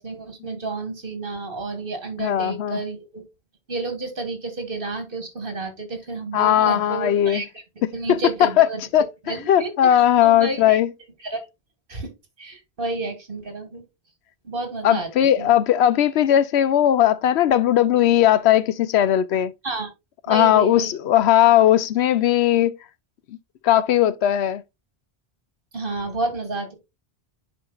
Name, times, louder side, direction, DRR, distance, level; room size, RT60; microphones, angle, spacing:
voice 1, 0.0-3.2 3.7-7.5 7.9-8.8 9.3-10.8 11.2-11.5 11.9-12.1 12.4-13.8 14.4-15.5 19.6-19.9 20.3-20.9 25.7-26.7, right 3 dB, 55° right, 2.0 m, -30 dB
voice 2, 2.2-2.8 6.3-7.4 7.8-8.7 8.9-9.1 9.5-10.9 14.8-19.5 20.3-22.7 23.6-24.6, left 11 dB, 80° left, 0.8 m, -18 dB
10.0 x 4.4 x 2.3 m
omnidirectional pair, 1.1 m